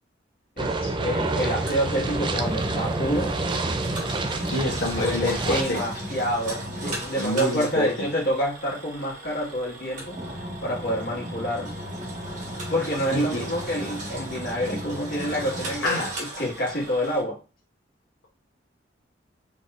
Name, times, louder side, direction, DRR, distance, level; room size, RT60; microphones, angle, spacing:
voice 1, 0.6-3.4 4.9-11.8 12.7-17.4, equal, 55° left, -4 dB, 1.8 m, -28 dB
sound 1, 0.6-5.6, right 2 dB, 25° right, 0.4 m, -28 dB
Engine, 1.1-17.2, right 1 dB, 45° right, 1.5 m, -35 dB
voice 2, 4.5-5.8 7.1-8.1 13.1-13.4 15.8-16.2, left 1 dB, 90° left, -3 dB, 0.9 m, -27 dB
4.2 x 3.5 x 2.5 m, 0.33 s
head